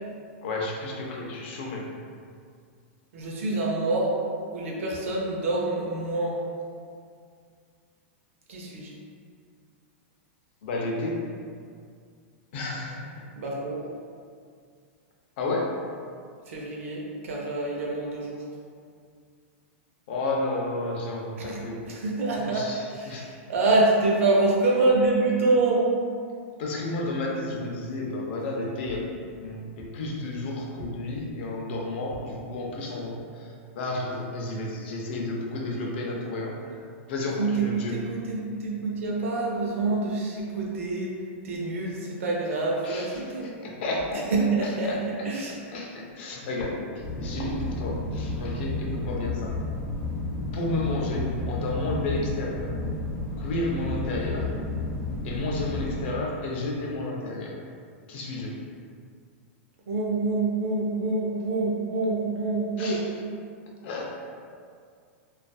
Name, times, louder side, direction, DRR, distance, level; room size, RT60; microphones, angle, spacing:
voice 1, 0.4-1.9 10.6-11.3 12.5-13.2 15.4-15.8 20.1-21.8 22.3-23.3 26.6-29.1 29.3-38.0 42.8-44.3 44.6-45.0 45.7-49.6 50.5-52.7 53.4-54.5 55.2-57.5 58.1-58.6 62.8-63.1 63.8-64.3, left 2 dB, 55° left, -1 dB, 0.5 m, -32 dB
voice 2, 3.1-4.2 4.5-6.4 8.5-8.9 13.4-13.8 16.5-18.4 21.4-25.9 37.4-41.2 41.4-43.5 44.3-45.5 59.9-63.1, right 2 dB, 80° right, -2 dB, 0.6 m, -26 dB
sound 1, 47.0-56.1, left 2 dB, 5° left, 1.2 m, -32 dB
2.5 x 2.4 x 2.3 m, 2.2 s
supercardioid pair, 155°, 7 cm